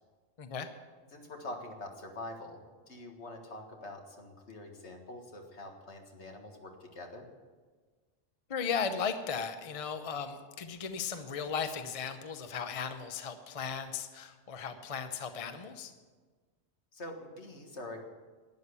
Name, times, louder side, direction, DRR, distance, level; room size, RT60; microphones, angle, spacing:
voice 1, 0.4-0.7 8.5-15.9, left 6 dB, 35° left, 8 dB, 0.7 m, -36 dB
voice 2, 1.1-2.6 2.9-7.3 16.9-18.0, left 1 dB, 70° left, 3 dB, 2.0 m, -45 dB
12.0 x 9.9 x 6.8 m, 1.4 s
omnidirectional pair, 1.2 m